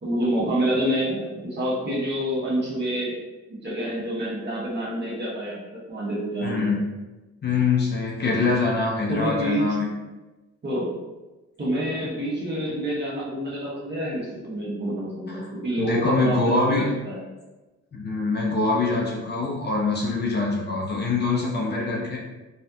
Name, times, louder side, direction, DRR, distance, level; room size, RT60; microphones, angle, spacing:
voice 1, 0.0-3.2 3.5-6.7 9.1-9.7 10.6-10.9 11.6-17.2, equal, 35° right, -6 dB, 1.3 m, -27 dB
voice 2, 6.4-6.8 7.4-9.9 15.3-15.5 15.8-16.9 17.9-22.2, left 3 dB, 35° left, -2 dB, 0.6 m, -24 dB
3.2 x 2.4 x 2.7 m, 1.1 s
cardioid pair, 90°, 30 cm